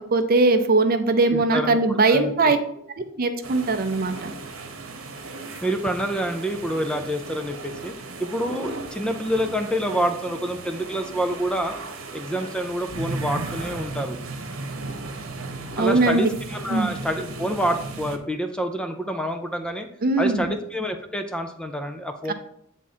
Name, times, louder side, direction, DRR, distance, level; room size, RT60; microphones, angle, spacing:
voice 1, 0.1-2.6 3.2-4.3 15.8-16.3 16.7-16.9 20.0-20.5 22.3-22.4, right 3 dB, 45° right, 8 dB, 0.6 m, -20 dB
voice 2, 1.3-2.5 5.6-7.9 8.2-11.8 12.1-14.2 15.8-19.9 20.2-22.3, equal, 5° left, 5 dB, 0.5 m, -27 dB
sound 1, 3.4-18.2, right 2 dB, 90° right, 1.0 m, -36 dB
8.2 x 3.7 x 4.2 m, 0.71 s
head